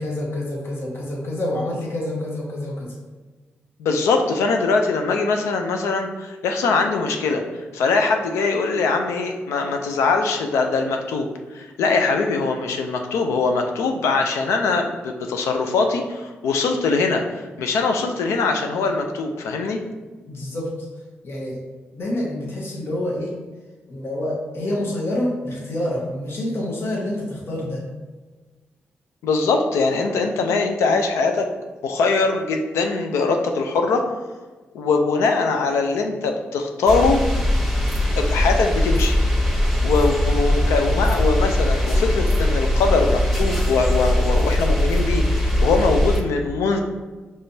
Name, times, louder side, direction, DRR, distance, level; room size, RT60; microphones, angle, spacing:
voice 1, 0.0-2.9 20.3-20.7 21.2-21.6 21.9-23.4 23.9-27.8, left 1 dB, 60° left, -4 dB, 1.2 m, -27 dB
voice 2, 3.8-7.4 7.7-19.8 29.2-31.5 31.8-34.0 34.7-37.2 38.1-39.2 39.8-46.8, left 4 dB, 85° left, 4 dB, 0.5 m, -22 dB
sound 1, 36.9-46.2, left 1 dB, ahead, 1.1 m, -20 dB
5.2 x 3.3 x 2.7 m, 1.3 s
supercardioid pair, 50°, 5 cm